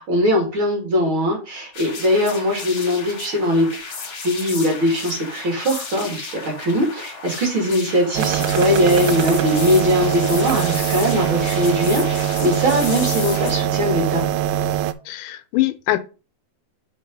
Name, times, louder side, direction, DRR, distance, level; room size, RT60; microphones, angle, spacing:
voice 1, 0.1-3.7 4.2-14.3, equal, 45° right, 2.8 m, -20 dB
sound 1, 1.7-13.5, left 4 dB, 45° left, 2.1 m, -33 dB
sound 2, 8.1-14.9, right 11 dB, 85° right, 2.1 m, -22 dB
voice 2, 15.1-16.0, left 16 dB, 85° left, 2.2 m, -22 dB
6.1 x 4.8 x 5.3 m
omnidirectional pair, 3.6 m